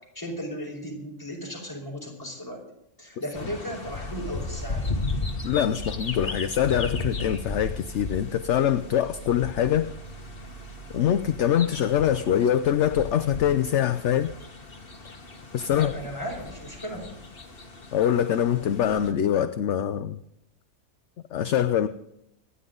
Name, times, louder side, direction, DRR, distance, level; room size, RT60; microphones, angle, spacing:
voice 1, 0.1-2.6 3.0-4.9 15.7-17.1, equal, 15° left, 4.8 m, -36 dB
sound 1, 3.3-19.1, left 3 dB, 40° left, 1.7 m, -36 dB
sound 2, 4.0-11.4, right 9 dB, 70° right, 7.1 m, -46 dB
voice 2, 5.4-9.9 10.9-14.3 15.5-15.9 17.9-20.2 21.3-21.9, left 10 dB, 60° left, 0.9 m, -24 dB
25.5 x 10.0 x 3.9 m
omnidirectional pair, 1.5 m